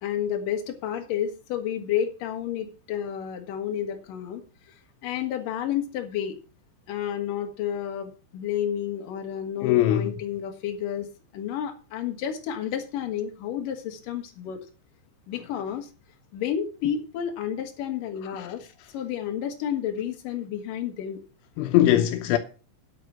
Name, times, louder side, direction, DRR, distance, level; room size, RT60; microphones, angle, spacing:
voice 1, 0.0-4.4 5.0-6.4 6.9-11.1 11.3-14.6 15.3-15.9 16.3-18.6 18.9-21.2, left 9 dB, 55° left, 2.9 m, -30 dB
voice 2, 9.6-10.1 18.2-18.5 21.6-22.4, left 13 dB, 85° left, 3.3 m, -21 dB
9.6 x 8.1 x 5.9 m
omnidirectional pair, 5.5 m